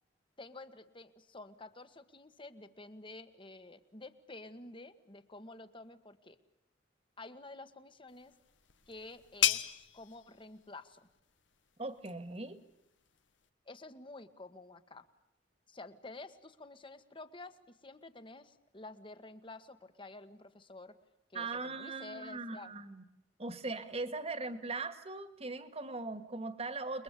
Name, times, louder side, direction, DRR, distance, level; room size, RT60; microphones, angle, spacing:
voice 1, 0.4-6.4 7.2-8.3 8.9-9.6 9.9-11.0 13.6-15.0 15.7-20.9 21.3-22.7, left 2 dB, 30° left, 10 dB, 1.7 m, -50 dB
sound 1, 8.1-13.5, left 11 dB, 80° left, 1.5 m, -38 dB
voice 2, 11.8-12.6 21.3-23.0 23.4-27.0, right 3 dB, 35° right, 11 dB, 2.2 m, -40 dB
30.0 x 22.0 x 8.5 m, 0.85 s
head